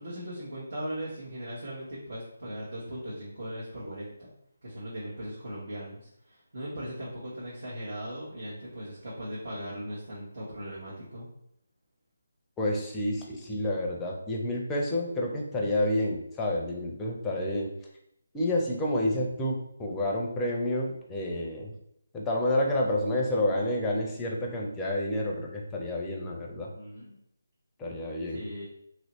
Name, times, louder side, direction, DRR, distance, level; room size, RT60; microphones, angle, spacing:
voice 1, 0.0-4.3 4.6-11.3 26.5-27.1 28.3-28.6, equal, 60° right, -7 dB, 1.1 m, -39 dB
voice 2, 12.6-17.7 18.3-21.7 22.1-26.7 27.8-28.4, left 1 dB, 10° left, -1 dB, 0.5 m, -29 dB
3.0 x 2.7 x 3.0 m, 0.76 s
figure-of-eight pair, 155°, 0 cm